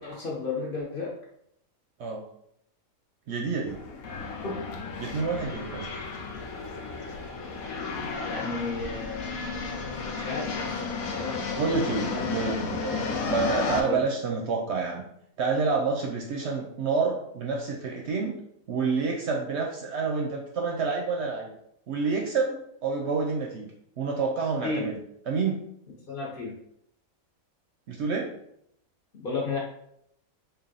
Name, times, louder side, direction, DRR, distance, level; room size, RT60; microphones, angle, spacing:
voice 1, 0.0-1.1 4.4-4.6 8.2-9.4 10.1-11.5 12.0-12.7 13.8-14.0 24.6-24.9 26.1-26.6 29.2-29.6, left 3 dB, 45° left, -4 dB, 1.0 m, -33 dB
voice 2, 3.3-3.8 5.0-5.9 11.6-15.0 15.4-18.4 18.7-21.5 21.9-23.7 24.0-25.0 25.3-25.6 27.9-28.3, right 4 dB, 65° right, 0 dB, 0.7 m, -28 dB
sound 1, 3.7-13.8, left 4 dB, 85° left, 1.1 m, -33 dB
3.3 x 2.4 x 3.8 m, 0.74 s
omnidirectional pair, 1.4 m